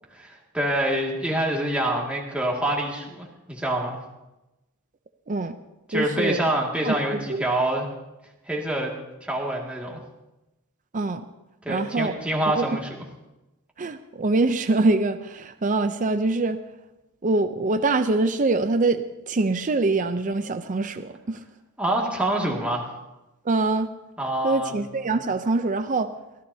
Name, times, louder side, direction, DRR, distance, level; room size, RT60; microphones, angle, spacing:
voice 1, 0.1-4.0 5.9-7.9 8.5-8.9 9.2-10.0 11.6-12.9 21.8-22.8 24.2-24.8, right 1 dB, 5° right, -2 dB, 2.1 m, -26 dB
voice 2, 5.9-6.4 6.8-7.4 10.9-11.3 11.7-12.1 12.6-12.8 13.8-16.6 17.2-21.4 23.4-23.9 24.4-26.1, right 3 dB, 35° right, 9 dB, 0.5 m, -24 dB
23.5 x 15.0 x 2.8 m, 0.99 s
head